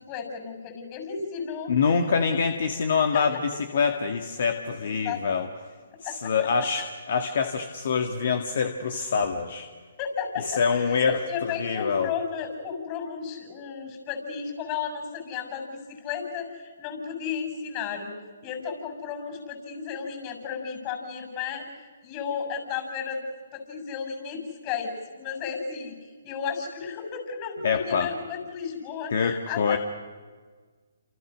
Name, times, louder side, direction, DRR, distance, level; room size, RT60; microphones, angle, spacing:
voice 1, 0.0-1.7 2.0-2.4 2.9-3.2 4.8-5.2 6.0-6.3 10.0-18.1 18.4-21.6 22.0-23.2 23.5-29.8, left 6 dB, 30° left, 6 dB, 6.8 m, -34 dB
voice 2, 1.7-5.5 6.0-9.7 10.5-12.1 27.6-28.1 29.1-29.8, left 5 dB, 55° left, 6 dB, 2.0 m, -25 dB
29.0 x 28.0 x 6.4 m, 1.5 s
hypercardioid pair, 140°, 0 cm